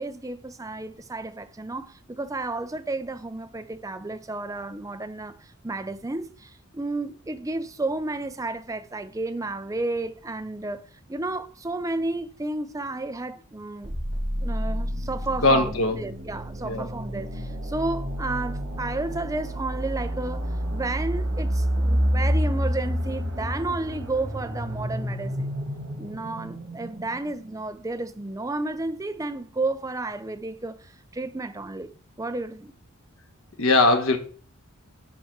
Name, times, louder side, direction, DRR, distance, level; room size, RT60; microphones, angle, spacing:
voice 1, 0.0-10.8 11.1-13.9 14.4-25.5 26.0-31.9 32.2-32.7, right 2 dB, 15° right, 0.6 m, -32 dB
sound 1, 13.8-27.6, equal, 85° right, 2.1 m, -29 dB
voice 2, 15.4-16.0 16.6-16.9 33.6-34.2, left 2 dB, 80° left, 1.3 m, -20 dB
7.3 x 4.4 x 5.9 m
head